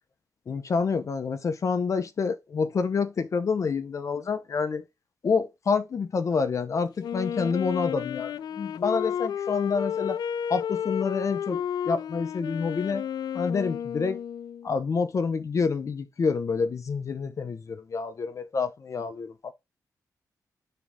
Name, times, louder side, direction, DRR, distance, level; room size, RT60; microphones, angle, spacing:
voice 1, 0.5-4.8 5.2-10.2 10.5-13.0 13.3-14.2 14.6-19.5, left 5 dB, 50° left, 0.7 m, -28 dB
Wind instrument woodwind instrument, 7.0-14.7, left 9 dB, 80° left, 0.4 m, -32 dB
9.1 x 3.7 x 3.6 m
cardioid pair, 90°, 7 cm